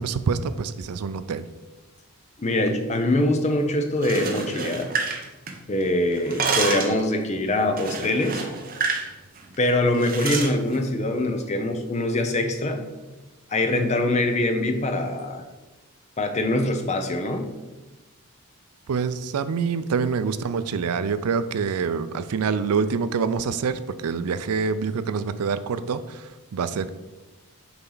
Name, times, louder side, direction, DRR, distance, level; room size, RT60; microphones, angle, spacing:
voice 1, 0.0-1.5 18.9-26.9, right 5 dB, 85° right, 13 dB, 0.4 m, -26 dB
voice 2, 2.4-4.9 5.7-8.4 9.6-12.8 13.5-15.4 16.2-17.5, left 1 dB, 30° left, 6 dB, 0.6 m, -23 dB
sound 1, 3.9-5.8 6.1-7.0 7.8-9.1 9.4-9.5 10.0-10.5, right 5 dB, 40° right, 0.7 m, -28 dB
6.9 x 4.4 x 3.9 m, 1.2 s
head